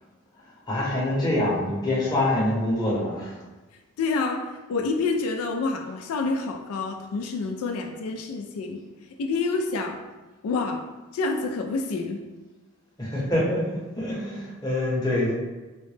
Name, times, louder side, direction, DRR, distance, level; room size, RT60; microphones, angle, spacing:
voice 1, 0.7-3.3 13.0-15.3, left 1 dB, 20° left, -6 dB, 0.7 m, -25 dB
voice 2, 4.0-8.8 9.2-10.0 10.4-10.8 11.1-12.3, left 3 dB, 85° left, 3 dB, 0.3 m, -28 dB
3.7 x 2.1 x 3.2 m, 1.2 s
head